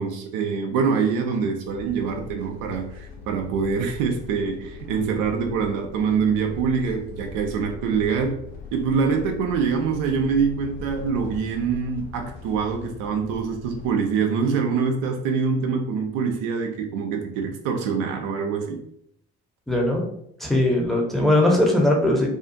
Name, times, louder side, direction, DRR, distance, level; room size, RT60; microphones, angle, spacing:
voice 1, 0.0-8.4 8.7-18.8, right 5 dB, 65° right, 4 dB, 0.5 m, -25 dB
sound 1, 1.6-13.9, left 4 dB, 70° left, 0.6 m, -40 dB
voice 2, 19.7-20.0 20.4-22.3, left 1 dB, ahead, -1 dB, 0.7 m, -20 dB
2.5 x 2.4 x 2.5 m, 0.73 s
hypercardioid pair, 45°, 35 cm